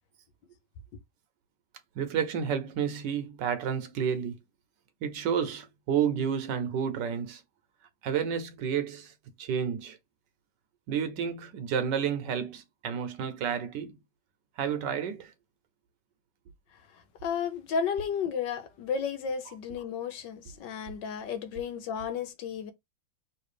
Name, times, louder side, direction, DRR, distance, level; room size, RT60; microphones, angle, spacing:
voice 1, 1.9-4.4 5.0-7.4 8.0-9.1 9.4-10.0 10.9-14.0 14.6-15.3, right 7 dB, 70° right, 1.4 m, -30 dB
voice 2, 16.9-22.7, left 6 dB, 70° left, 1.4 m, -33 dB
3.3 x 3.1 x 4.8 m
omnidirectional pair, 2.1 m